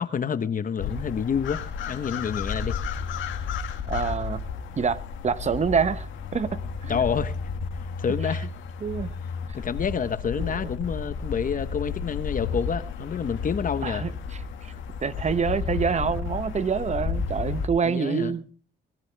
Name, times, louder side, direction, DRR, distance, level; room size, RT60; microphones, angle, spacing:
voice 1, 0.0-2.8 6.9-7.3 8.0-8.5 9.5-14.1 17.8-18.3, left 7 dB, 45° left, 1.0 m, -28 dB
sound 1, 0.8-17.7, left 5 dB, 80° left, 1.9 m, -32 dB
voice 2, 3.9-4.4 4.8-6.9 8.8-9.1 10.4-10.7 13.8-14.1 14.6-14.7 15.0-18.4, right 6 dB, 35° right, 0.9 m, -26 dB
21.0 x 14.0 x 3.4 m
cardioid pair, 90°, 20 cm